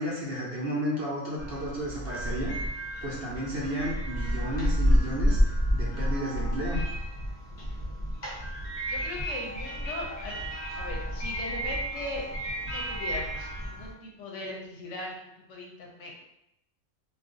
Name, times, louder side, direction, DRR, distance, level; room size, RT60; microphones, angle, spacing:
voice 1, 0.0-2.5 3.0-5.4 5.7-6.8, equal, 55° right, -4 dB, 0.8 m, -32 dB
sound 1, 1.4-13.9, equal, 40° left, 0.7 m, -30 dB
voice 2, 8.9-10.3 10.8-16.2, left 2 dB, 70° left, -1 dB, 0.9 m, -39 dB
2.4 x 2.3 x 3.7 m, 0.83 s
omnidirectional pair, 1.4 m